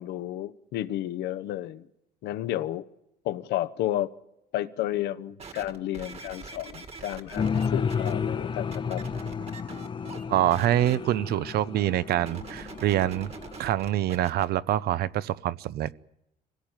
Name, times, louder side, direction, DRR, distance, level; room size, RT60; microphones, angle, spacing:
voice 1, 0.0-1.9 2.2-2.8 3.2-4.1 4.5-9.0, left 13 dB, 80° left, 1.0 m, -32 dB
sound 1, 5.4-8.1 8.7-10.2 10.5-11.0 12.2-14.5 15.1-15.2, right 4 dB, 35° right, 2.0 m, -43 dB
sound 2, 7.4-13.6, left 6 dB, 30° left, 0.8 m, -32 dB
voice 2, 10.3-13.3 13.6-15.9, right 13 dB, 70° right, 0.7 m, -25 dB
25.0 x 16.5 x 9.0 m
cardioid pair, 110°, 17 cm